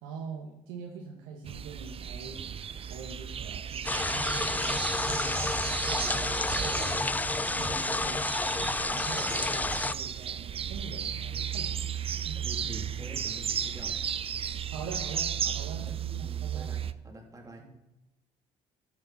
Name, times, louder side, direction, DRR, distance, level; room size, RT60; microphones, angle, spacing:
voice 1, 0.0-2.5 2.8-5.4 5.8-7.1 7.5-8.2 8.8-11.7 12.2-12.4 14.7-15.3 15.5-16.7 17.6-17.7, right 5 dB, 85° right, -1 dB, 1.4 m, -43 dB
sound 1, 1.4-16.9, right 8 dB, 40° right, 0.5 m, -35 dB
sound 2, 3.8-9.9, left 2 dB, 10° left, 0.4 m, -30 dB
sound 3, 10.4-15.4, left 6 dB, 55° left, 1.2 m, -53 dB
voice 2, 12.3-14.0 15.4-17.6, right 1 dB, 20° right, 1 dB, 2.9 m, -47 dB
12.0 x 6.9 x 4.2 m, 0.96 s
supercardioid pair, 65°, 15 cm